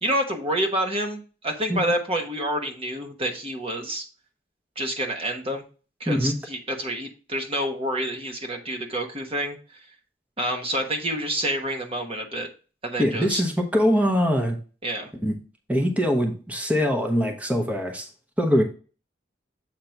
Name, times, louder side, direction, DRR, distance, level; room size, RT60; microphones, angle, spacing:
voice 1, 0.0-4.0 4.8-5.6 6.0-9.6 10.4-12.5 12.8-13.4 14.8-15.1, right 1 dB, 30° right, 4 dB, 1.2 m, -28 dB
voice 2, 6.1-6.4 13.0-14.6 15.2-15.4 15.7-18.1 18.4-18.6, equal, 10° right, 3 dB, 0.9 m, -23 dB
7.8 x 2.9 x 5.7 m, 0.35 s
head